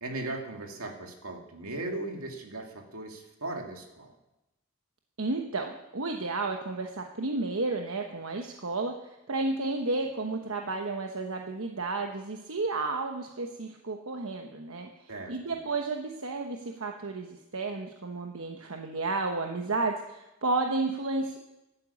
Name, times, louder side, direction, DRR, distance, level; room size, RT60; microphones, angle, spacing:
voice 1, 0.0-4.2 15.1-15.6, right 2 dB, 90° right, 2 dB, 2.4 m, -38 dB
voice 2, 5.2-8.9 9.3-14.9 15.3-21.4, right 3 dB, 75° right, 3 dB, 1.1 m, -32 dB
12.0 x 9.2 x 8.4 m, 0.94 s
head